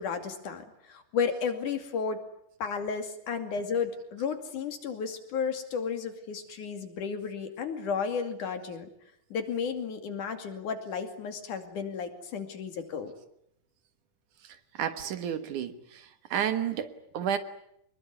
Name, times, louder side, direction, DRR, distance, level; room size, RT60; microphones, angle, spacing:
voice 1, 0.0-2.2 2.6-8.9 9.3-13.1, left 6 dB, 70° left, 7 dB, 3.9 m, -33 dB
voice 2, 14.8-16.0 16.3-17.4, right 9 dB, 70° right, 10 dB, 2.9 m, -31 dB
25.0 x 21.5 x 9.7 m, 0.74 s
omnidirectional pair, 3.8 m